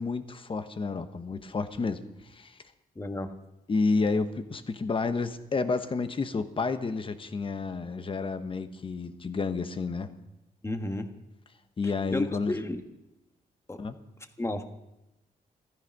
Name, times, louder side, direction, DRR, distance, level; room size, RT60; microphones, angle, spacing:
voice 1, 0.0-2.6 3.7-10.1 11.8-12.5 13.8-14.0, left 4 dB, 35° left, 10 dB, 1.0 m, -30 dB
voice 2, 2.9-3.3 10.6-11.1 12.1-12.8 13.7-13.8 14.4-14.6, left 1 dB, 15° left, 7 dB, 1.3 m, -32 dB
14.0 x 13.5 x 5.3 m, 0.93 s
cardioid pair, 105°, 16 cm